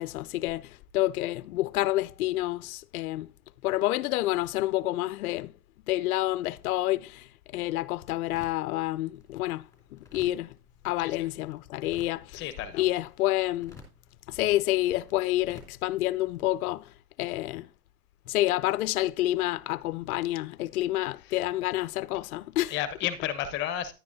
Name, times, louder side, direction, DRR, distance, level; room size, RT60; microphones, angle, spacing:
voice 1, 0.0-3.3 3.6-5.5 5.9-7.3 7.5-9.6 9.9-10.5 10.8-12.4 12.8-13.8 14.3-16.9 17.2-17.7 18.3-22.7, left 16 dB, 65° left, 0.5 m, -28 dB
sound 1, 8.2-17.0, left 4 dB, 5° left, 2.5 m, -54 dB
voice 2, 12.3-12.9 21.2-21.4 22.7-23.9, left 11 dB, 25° left, 0.9 m, -32 dB
10.5 x 9.6 x 2.7 m
hypercardioid pair, 150°, 47 cm